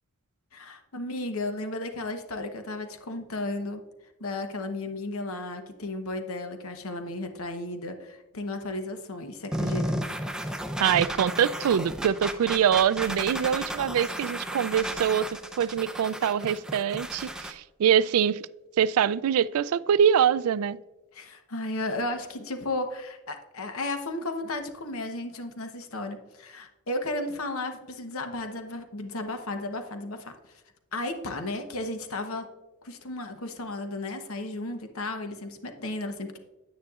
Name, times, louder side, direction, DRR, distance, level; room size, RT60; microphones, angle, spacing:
voice 1, 0.5-3.8 4.2-10.1 21.1-30.3 30.9-32.5 32.8-36.4, left 2 dB, 70° left, 1.0 m, -34 dB
sound 1, 9.5-17.5, right 1 dB, 5° right, 0.5 m, -33 dB
voice 2, 10.8-18.5 18.8-20.8, right 8 dB, 80° right, 0.3 m, -24 dB
9.6 x 9.6 x 2.4 m
head